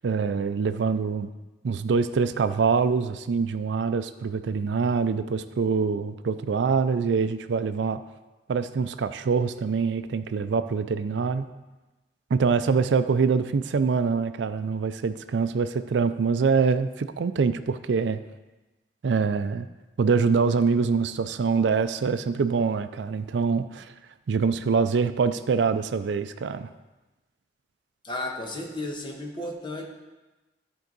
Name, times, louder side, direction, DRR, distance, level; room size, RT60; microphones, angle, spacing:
voice 1, 0.0-1.3 1.6-8.0 8.5-11.5 12.3-18.2 19.0-19.7 20.0-23.9 24.3-26.7, right 5 dB, 80° right, 12 dB, 0.4 m, -24 dB
voice 2, 28.0-29.9, left 1 dB, 25° left, 1 dB, 1.2 m, -33 dB
13.5 x 4.6 x 4.0 m, 1.1 s
head